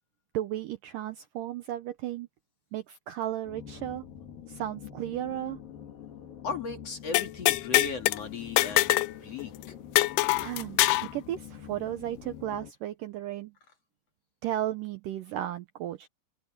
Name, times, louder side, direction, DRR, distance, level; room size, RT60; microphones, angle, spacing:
voice 1, 0.3-2.3 2.7-4.0 4.5-5.6 10.4-13.5 14.4-16.1, right 12 dB, 75° right, 2.0 m, -34 dB
sound 1, 3.4-12.7, left 9 dB, 60° left, 4.3 m, -46 dB
voice 2, 6.4-9.5, left 4 dB, 45° left, 2.6 m, -37 dB
sound 2, 7.1-8.2 8.6-9.1 9.4-9.5 10.0-11.1, left 17 dB, 80° left, 2.6 m, -24 dB
open air
omnidirectional pair, 4.7 m